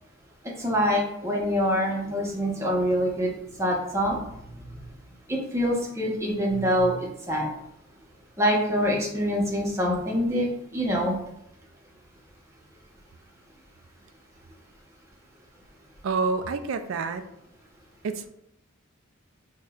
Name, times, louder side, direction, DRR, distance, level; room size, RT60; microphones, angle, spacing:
voice 1, 0.6-3.3 3.6-4.2 5.3-7.0 7.3-7.5 8.4-10.5 10.7-11.2, equal, 15° right, -2 dB, 0.7 m, -25 dB
voice 2, 16.0-17.2 18.0-18.3, right 4 dB, 70° right, 9 dB, 0.3 m, -28 dB
5.8 x 2.2 x 2.3 m, 0.79 s
head